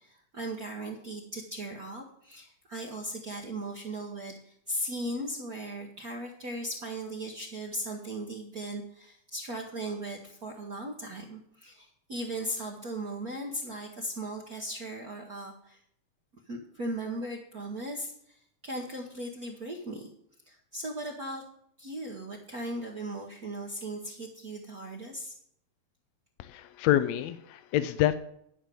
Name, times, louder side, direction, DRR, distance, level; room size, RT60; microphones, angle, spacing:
voice 1, 0.0-15.8 16.5-20.1 20.5-21.4 21.8-25.3, right 1 dB, 80° right, 0 dB, 0.8 m, -38 dB
voice 2, 26.4-28.1, left 13 dB, 80° left, 12 dB, 1.7 m, -27 dB
11.0 x 5.3 x 7.5 m, 0.71 s
omnidirectional pair, 3.5 m